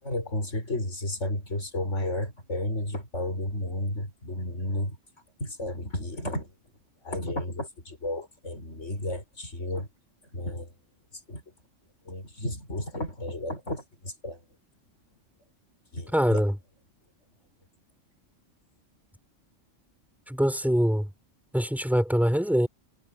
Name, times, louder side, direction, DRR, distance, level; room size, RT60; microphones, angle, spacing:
voice 1, 0.0-5.0 5.4-6.5 7.0-9.9 10.3-10.7 11.3-11.4 12.1-14.4 15.9-16.4, left 1 dB, 70° left, 6.3 m, -32 dB
voice 2, 16.1-16.6 20.3-21.1 21.5-22.7, equal, ahead, 3.9 m, -23 dB
omnidirectional pair, 1.3 m